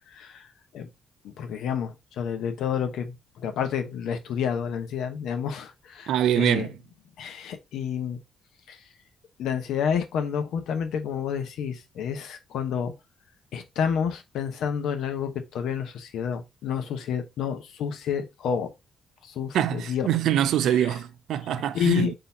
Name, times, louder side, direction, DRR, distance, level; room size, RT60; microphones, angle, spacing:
voice 1, 0.1-0.9 1.4-6.7 7.2-8.2 8.7-8.8 9.4-12.9 13.5-18.7 19.2-20.1 20.6-20.9 21.7-22.1, left 7 dB, 80° left, 0.8 m, -29 dB
voice 2, 6.1-6.7 19.5-22.1, right 10 dB, 80° right, 0.4 m, -24 dB
3.8 x 2.7 x 4.2 m
cardioid pair, 90°, 0 cm